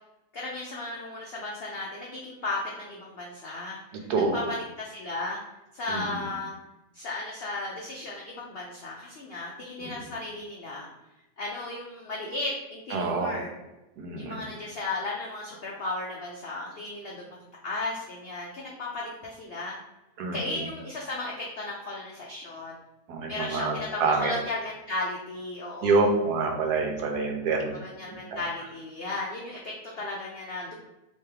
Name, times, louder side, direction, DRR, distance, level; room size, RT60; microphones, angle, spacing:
voice 1, 0.3-4.1 4.3-5.4 5.7-6.5 6.9-10.9 11.4-13.5 14.2-17.4 17.6-19.7 20.3-22.8 23.3-26.1 27.7-30.7, left 2 dB, 75° left, -3 dB, 0.5 m, -35 dB
voice 2, 4.1-4.4 5.9-6.3 9.8-10.1 12.9-13.4 14.0-14.4 20.2-20.6 23.1-24.3 25.8-27.7 28.1-28.4, right 3 dB, 80° right, 2 dB, 1.2 m, -27 dB
3.3 x 3.0 x 3.3 m, 1.0 s
omnidirectional pair, 1.7 m